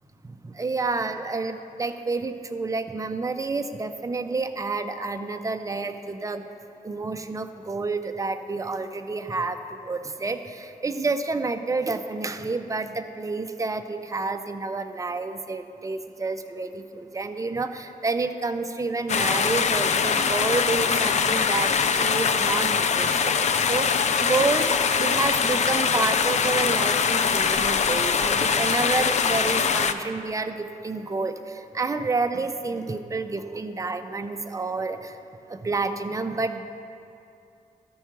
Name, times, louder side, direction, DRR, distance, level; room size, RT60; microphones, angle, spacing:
voice 1, 0.2-6.4 6.8-35.2 35.5-36.6, right 3 dB, 25° right, 7 dB, 0.5 m, -29 dB
sound 1, 19.1-29.9, left 6 dB, 50° left, 0.4 m, -23 dB
13.5 x 4.6 x 5.9 m, 2.6 s
wide cardioid pair, 115°, 15 cm